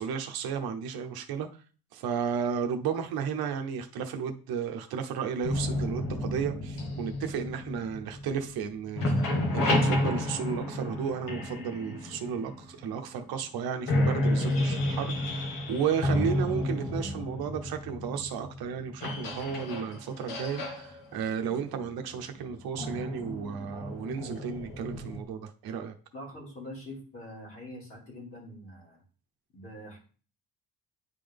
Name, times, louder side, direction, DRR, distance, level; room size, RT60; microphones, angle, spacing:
voice 1, 0.0-1.5 1.9-9.2 9.5-25.9, right 7 dB, 85° right, 5 dB, 0.9 m, -33 dB
sound 1, 5.4-8.6 8.9-12.8 13.4-13.5 13.8-25.2, left 1 dB, 65° left, 1.5 m, -31 dB
voice 2, 26.1-29.0 29.5-30.0, left 1 dB, 35° left, -4 dB, 2.6 m, -44 dB
9.8 x 3.8 x 3.5 m, 0.39 s
cardioid pair, 175°, 36 cm